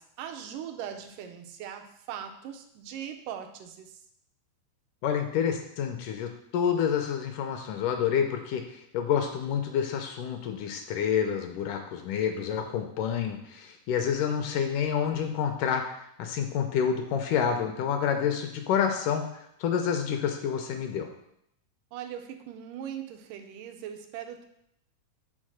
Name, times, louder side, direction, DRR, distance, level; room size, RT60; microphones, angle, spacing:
voice 1, 0.0-4.0 21.9-24.5, right 9 dB, 80° right, 5 dB, 2.2 m, -40 dB
voice 2, 5.0-15.8 16.2-21.1, left 8 dB, 80° left, 4 dB, 2.1 m, -28 dB
6.4 x 4.1 x 6.2 m, 0.75 s
omnidirectional pair, 3.9 m